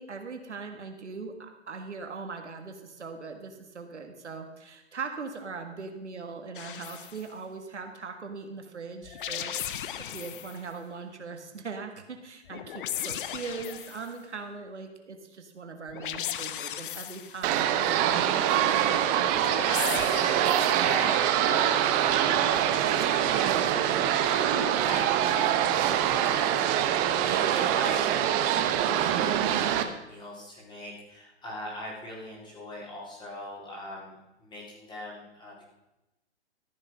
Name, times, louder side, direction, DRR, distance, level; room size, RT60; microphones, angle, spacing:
voice 1, 0.0-18.4 18.7-19.3, right 4 dB, 85° right, 5 dB, 1.9 m, -40 dB
sound 1, 6.6-7.2 9.0-10.6 12.5-14.1 15.9-17.5 19.3-20.9, left 10 dB, 50° left, 0.8 m, -36 dB
sound 2, 17.4-29.8, right 10 dB, 25° right, 0.8 m, -24 dB
voice 2, 20.7-22.9 23.2-26.0 26.3-35.6, left 1 dB, 15° left, -3 dB, 4.0 m, -42 dB
13.5 x 7.3 x 5.6 m, 0.96 s
hypercardioid pair, 125°, 34 cm